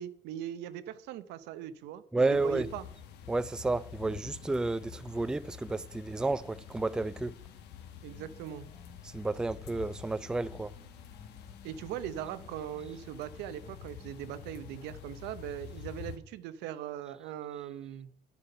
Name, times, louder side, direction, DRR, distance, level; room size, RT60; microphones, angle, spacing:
voice 1, 0.0-2.8 8.0-8.7 11.6-18.1, right 11 dB, 90° right, 0.8 m, -40 dB
voice 2, 2.1-2.7 3.3-7.4 9.0-10.8, right 2 dB, 5° right, 0.3 m, -31 dB
sound 1, 2.3-16.2, left 8 dB, 80° left, 1.2 m, -48 dB
sound 2, 8.1-9.2 9.7-14.9, left 2 dB, 45° left, 2.6 m, -58 dB
9.9 x 8.2 x 5.5 m
cardioid pair, 110°, 17 cm